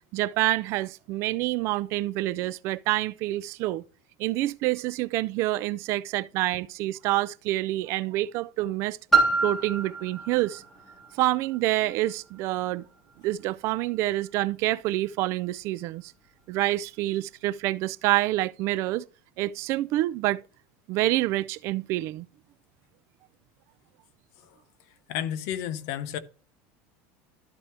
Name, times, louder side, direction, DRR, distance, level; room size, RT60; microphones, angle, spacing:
voice 1, 0.1-3.8 4.2-9.0 9.4-10.6 11.1-12.8 13.2-16.1 16.5-19.1 19.4-20.4 20.9-22.3, right 17 dB, 45° right, 0.4 m, -27 dB
Piano, 9.1-14.5 15.3-15.4, right 4 dB, 5° left, 3.2 m, -29 dB
voice 2, 25.1-26.2, left 10 dB, 55° left, 0.9 m, -31 dB
12.5 x 4.4 x 3.4 m
supercardioid pair, 155°, 6 cm